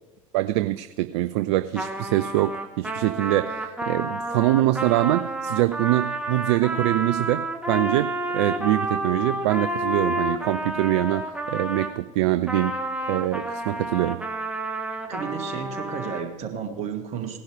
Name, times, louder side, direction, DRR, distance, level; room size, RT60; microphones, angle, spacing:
voice 1, 0.3-12.8 13.1-14.2, right 16 dB, 55° right, 0.4 m, -24 dB
Trumpet, 1.7-12.0 12.5-16.2, right 1 dB, 5° right, 1.5 m, -30 dB
voice 2, 15.1-17.4, right 7 dB, 40° right, 2.1 m, -32 dB
18.0 x 11.0 x 3.5 m
figure-of-eight pair, 80°, 18 cm